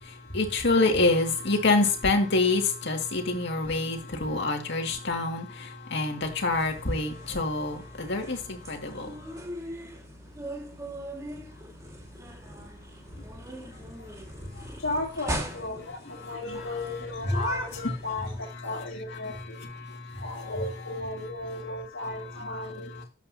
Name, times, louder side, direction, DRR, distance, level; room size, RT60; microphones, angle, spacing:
voice 1, 0.0-9.2 14.5-14.6 15.9-16.3 16.5-16.7 17.3-17.5 19.2-21.0 22.0-23.0, left 3 dB, 60° left, 2.1 m, -27 dB
sound 1, 6.5-18.4, right 1 dB, 15° right, 2.0 m, -40 dB
voice 2, 14.8-19.6 20.2-23.0, left 2 dB, 80° left, 2.2 m, -35 dB
12.0 x 8.1 x 2.8 m
head